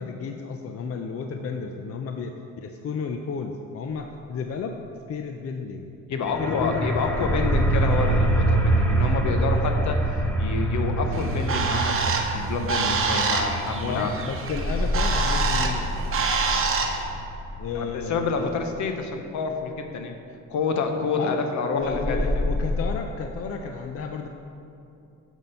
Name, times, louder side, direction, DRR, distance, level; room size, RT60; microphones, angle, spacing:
voice 1, 0.0-4.8 5.1-5.9 6.4-6.9 13.9-15.9 17.6-18.6 21.2-21.4 21.7-24.3, left 5 dB, 50° left, 5 dB, 0.6 m, -32 dB
voice 2, 6.1-10.0 10.4-14.1 17.7-20.1 20.5-22.2, left 4 dB, 70° left, 5 dB, 0.9 m, -28 dB
sound 1, 6.3-17.7, right 2 dB, 5° left, 1.0 m, -26 dB
Bird, 11.1-17.0, right 5 dB, 45° right, 1.0 m, -26 dB
sound 2, 14.4-19.5 21.8-23.0, left 1 dB, 20° right, 0.6 m, -30 dB
7.2 x 5.9 x 5.5 m, 2.7 s
cardioid pair, 90°, 30 cm